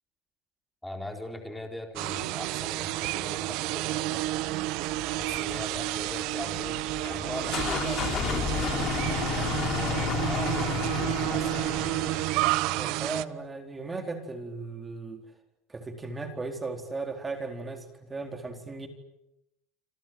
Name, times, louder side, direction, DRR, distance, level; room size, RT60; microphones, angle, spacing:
voice 1, 0.8-4.6 5.2-6.8 7.1-11.9, left 1 dB, 5° left, 3 dB, 4.3 m, -41 dB
sound 1, 2.0-13.2, right 18 dB, 60° right, 1.0 m, -30 dB
sound 2, 4.2-10.6, left 13 dB, 80° left, 2.8 m, -49 dB
sound 3, 7.0-12.6, left 8 dB, 35° left, 3.2 m, -32 dB
voice 2, 12.7-15.2 15.7-18.9, right 3 dB, 15° right, 4 dB, 4.1 m, -36 dB
28.0 x 27.0 x 7.8 m, 0.85 s
supercardioid pair, 150°, 0 cm